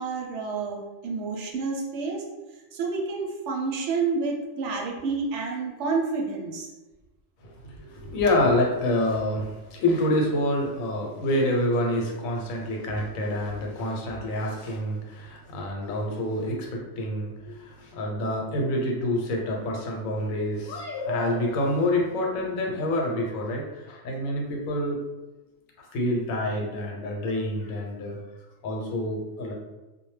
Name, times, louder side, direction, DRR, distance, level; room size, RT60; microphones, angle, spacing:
voice 1, 0.0-2.2 2.7-6.7, right 4 dB, 70° right, 0 dB, 0.8 m, -29 dB
voice 2, 7.4-25.0 25.9-28.2 28.6-29.5, left 1 dB, 80° left, 0 dB, 1.0 m, -27 dB
2.2 x 2.1 x 3.1 m, 1.1 s
omnidirectional pair, 1.4 m